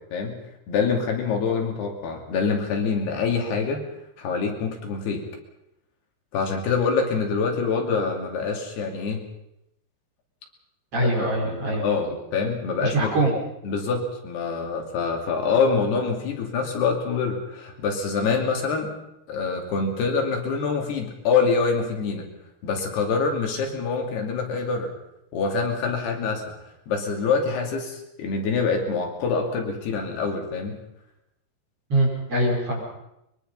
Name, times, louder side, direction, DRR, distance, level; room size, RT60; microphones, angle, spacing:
voice 1, 0.7-3.8 4.2-5.2 6.3-9.2 11.2-13.1 13.6-18.9 19.3-22.3 22.6-24.9 25.3-26.4 26.9-30.8, left 5 dB, 75° left, 2 dB, 4.7 m, -25 dB
voice 2, 10.9-11.8 12.8-13.3 31.9-32.8, right 1 dB, 35° right, -2 dB, 6.0 m, -23 dB
23.0 x 22.5 x 5.5 m, 0.83 s
omnidirectional pair, 4.7 m